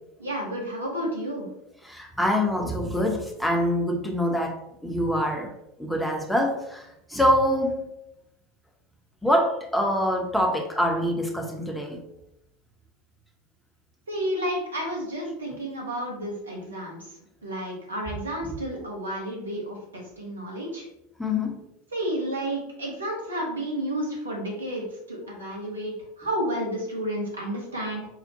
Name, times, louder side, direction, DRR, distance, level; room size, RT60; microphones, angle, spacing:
voice 1, 0.2-1.5 14.1-17.1 17.4-20.9 21.9-28.1, right 1 dB, 80° right, -2 dB, 0.9 m, -31 dB
voice 2, 1.8-5.5 5.8-7.9 9.2-12.0 21.2-21.6, equal, 5° left, 2 dB, 0.7 m, -25 dB
5.7 x 2.1 x 2.7 m, 0.83 s
figure-of-eight pair, 80°, 0 cm